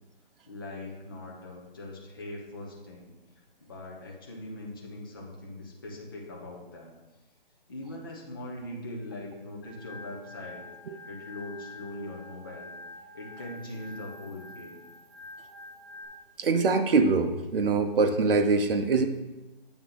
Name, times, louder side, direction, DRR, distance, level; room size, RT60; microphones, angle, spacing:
voice 1, 0.5-3.1 3.6-7.0 7.7-10.7 11.1-12.7 13.1-14.8, left 1 dB, 25° left, -3 dB, 0.7 m, -41 dB
Organ, 9.6-16.1, left 2 dB, 5° left, 1.9 m, -47 dB
voice 2, 16.4-19.1, right 4 dB, 70° right, 6 dB, 0.7 m, -23 dB
8.0 x 3.5 x 5.7 m, 1.1 s
hypercardioid pair, 170°, 30 cm